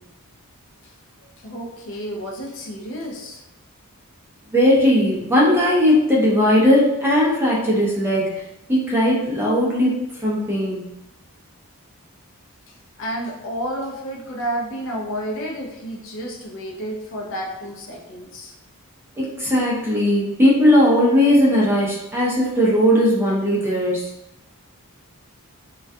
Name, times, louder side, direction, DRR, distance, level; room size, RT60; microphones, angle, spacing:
voice 1, 1.4-3.4 12.7-18.5, equal, 55° left, -1 dB, 0.5 m, -31 dB
voice 2, 4.5-8.3 8.7-9.9 10.2-10.8 19.2-24.0, left 1 dB, 10° right, -5 dB, 0.5 m, -18 dB
2.3 x 2.2 x 2.6 m, 0.91 s
head